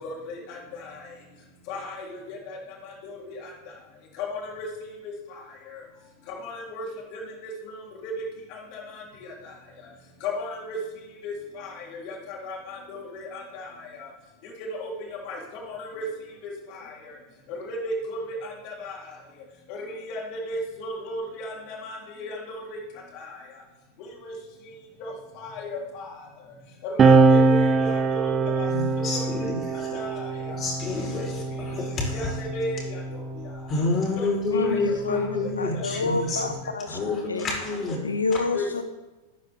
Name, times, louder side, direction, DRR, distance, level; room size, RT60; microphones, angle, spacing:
voice 1, 0.0-1.0 1.7-2.6 2.8-3.5 4.2-4.7 5.0-5.1 5.7-5.8 6.3-6.9 7.1-7.8 8.0-8.1 8.5-9.3 10.2-10.8 11.2-14.1 14.7-15.4 15.7-16.1 16.4-17.1 17.5-19.0 19.7-22.8 23.1-23.4 24.0-24.3 25.0-26.2 26.8-28.7 29.0-29.5 29.7-30.6 31.2-31.3 32.1-33.2 34.2-35.8 36.4-36.5 38.5-38.7, left 1 dB, 50° left, -2 dB, 4.0 m, -36 dB
sound 1, 27.0-33.9 34.9-36.7, right 3 dB, 25° right, 0.9 m, -24 dB
voice 2, 28.7-30.0 30.5-32.4 33.7-36.4 36.9-38.0, left 3 dB, 30° left, -1 dB, 4.8 m, -28 dB
voice 3, 34.5-35.3 35.6-37.0 37.3-37.4 38.0-38.8, left 3 dB, 85° left, 9 dB, 1.1 m, -28 dB
14.0 x 9.4 x 3.8 m, 1.1 s
figure-of-eight pair, 95°, 0 cm